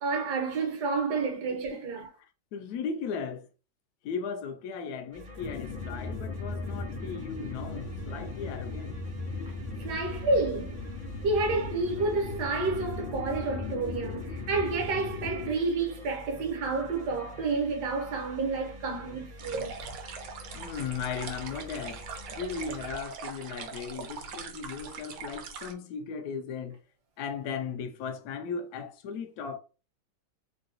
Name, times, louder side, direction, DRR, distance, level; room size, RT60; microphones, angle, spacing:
voice 1, 0.0-2.1 9.8-10.8 11.2-19.9, right 3 dB, 65° right, 1.4 m, -30 dB
voice 2, 1.5-1.8 2.5-3.5 4.0-9.0 20.5-22.0 22.3-26.8 27.2-29.6, left 6 dB, 70° left, 1.0 m, -37 dB
sound 1, 5.1-23.0, left 2 dB, 45° right, 0.5 m, -47 dB
sound 2, 5.4-15.5, left 3 dB, 90° left, 1.3 m, -37 dB
sound 3, 19.4-25.7, right 5 dB, 85° right, 1.4 m, -41 dB
3.7 x 2.3 x 2.5 m
omnidirectional pair, 2.0 m